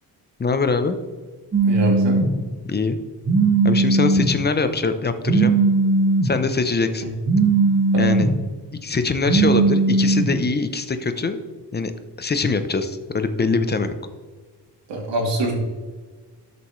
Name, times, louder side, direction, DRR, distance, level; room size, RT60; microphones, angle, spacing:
voice 1, 0.4-1.0 2.7-3.0 3.6-5.5 6.2-7.1 8.0-8.3 8.8-11.4 11.7-11.9 12.2-13.9, left 4 dB, 25° left, 10 dB, 0.6 m, -23 dB
Telephone, 1.5-2.3 3.2-4.3 5.2-6.3 7.2-8.3 9.2-10.3, right 3 dB, 30° right, 1.1 m, -18 dB
voice 2, 1.6-2.2 7.9-8.2 14.9-15.5, right 2 dB, 85° right, 0 dB, 2.8 m, -24 dB
12.5 x 7.0 x 3.1 m, 1.4 s
wide cardioid pair, 160°, 42 cm